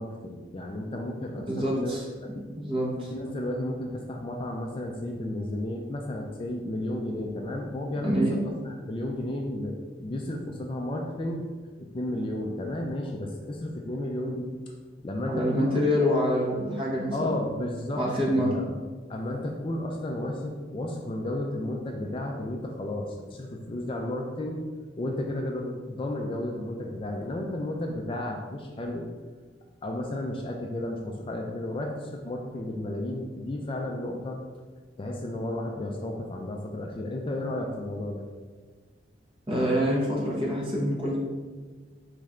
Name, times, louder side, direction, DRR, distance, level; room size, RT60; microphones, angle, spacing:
voice 1, 0.0-2.0 2.2-2.4 3.1-11.5 11.8-14.5 15.0-16.2 17.1-18.0 18.3-18.8 19.1-24.6 25.0-29.1 29.8-34.4 35.0-38.3, left 1 dB, 30° left, 1 dB, 0.3 m, -33 dB
voice 2, 1.5-2.0 2.5-3.1 8.0-8.4 15.3-17.4 18.0-18.5 39.5-41.2, equal, 30° right, -5 dB, 1.1 m, -26 dB
4.2 x 3.2 x 3.6 m, 1.4 s
head